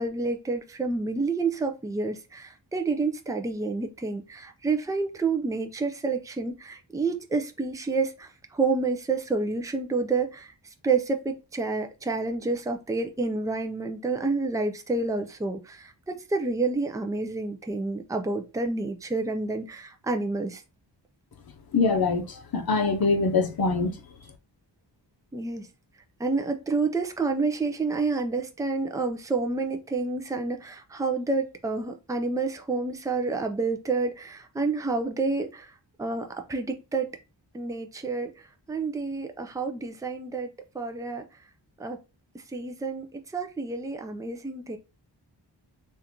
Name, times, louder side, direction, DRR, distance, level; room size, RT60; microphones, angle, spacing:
voice 1, 0.0-10.5 10.8-20.6 25.3-25.7 26.2-35.7 36.0-37.1 37.5-38.3 38.7-40.5 40.7-41.3 41.8-42.0 42.5-44.8, right 3 dB, 10° right, 0.5 m, -29 dB
voice 2, 21.7-24.0, left 4 dB, 55° left, 0.7 m, -24 dB
3.6 x 2.6 x 2.9 m
wide cardioid pair, 95°, 44 cm